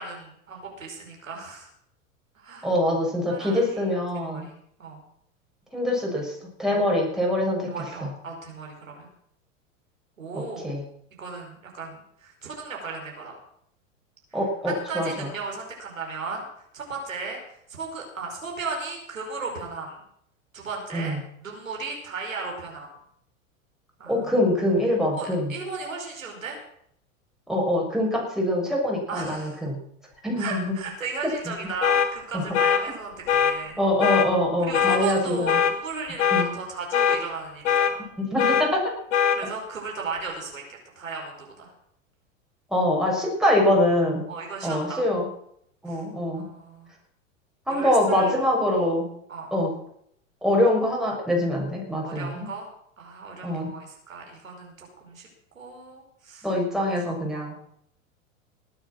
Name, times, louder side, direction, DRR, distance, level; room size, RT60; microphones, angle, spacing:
voice 1, 0.0-1.7 2.3-2.7 3.3-3.9 4.3-5.0 6.7-6.9 7.7-9.1 10.2-10.7 11.2-13.3 14.4-16.5 16.7-17.4 17.8-20.0 20.5-22.9 24.0-24.3 25.1-26.6 29.1-29.6 30.4-33.8 34.7-38.1 39.3-40.6 40.9-41.7 44.3-45.0 45.9-46.0 46.3-46.9 47.7-48.3 49.3-49.5 52.0-52.7 53.0-55.3 55.5-56.5 57.3-57.5, right 4 dB, 85° right, 0 dB, 5.2 m, -36 dB
voice 2, 2.6-4.5 5.7-6.3 6.6-7.7 8.0-8.1 10.3-10.8 14.3-15.3 20.9-21.2 24.1-25.5 27.5-29.8 30.2-30.7 33.8-35.6 36.3-36.5 38.2-38.9 42.7-44.3 44.6-45.3 45.8-46.5 47.7-49.1 49.5-49.7 50.4-52.5 53.4-53.7 56.4-57.5, left 1 dB, ahead, -2 dB, 6.7 m, -24 dB
sound 1, 31.8-32.1 32.5-32.8 33.3-33.5 34.0-34.3 34.7-35.0 35.5-35.7 36.2-36.5 36.9-37.2 37.7-37.9 38.4-38.7 39.1-39.4, left 8 dB, 65° left, 2.4 m, -21 dB
19.5 x 9.4 x 6.3 m, 0.70 s
hypercardioid pair, 90°, 39 cm